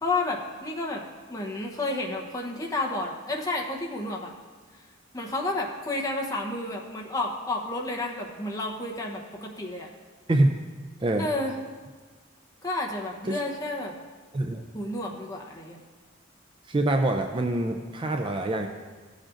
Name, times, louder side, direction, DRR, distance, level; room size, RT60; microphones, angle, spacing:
voice 1, 0.0-1.0 1.3-4.3 5.1-9.9 11.2-11.5 12.6-13.9 14.7-15.8, left 2 dB, 15° left, -1 dB, 0.9 m, -31 dB
voice 2, 14.3-14.6 16.7-18.7, right 1 dB, 25° right, 4 dB, 0.4 m, -25 dB
15.0 x 7.3 x 2.5 m, 1.4 s
head